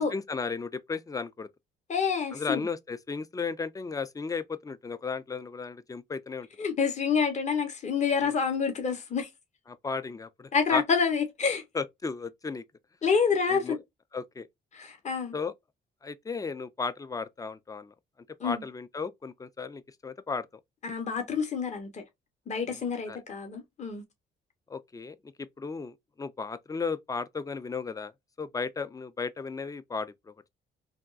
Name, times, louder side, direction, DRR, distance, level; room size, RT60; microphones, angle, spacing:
voice 1, 0.0-1.5 2.3-6.5 8.2-8.3 9.7-10.8 11.7-12.6 13.5-13.8 14.1-14.5 15.3-15.5 16.0-17.9 18.4-20.5 23.1-23.2 24.7-28.1 28.4-30.3, left 4 dB, 15° left, 0.4 m, -35 dB
voice 2, 1.9-2.7 6.6-9.3 10.5-11.6 13.0-13.8 14.7-15.3 18.4-18.6 20.8-22.0 22.5-24.0, left 6 dB, 35° left, 0.9 m, -28 dB
3.4 x 2.3 x 2.4 m
cardioid pair, 90°, 20 cm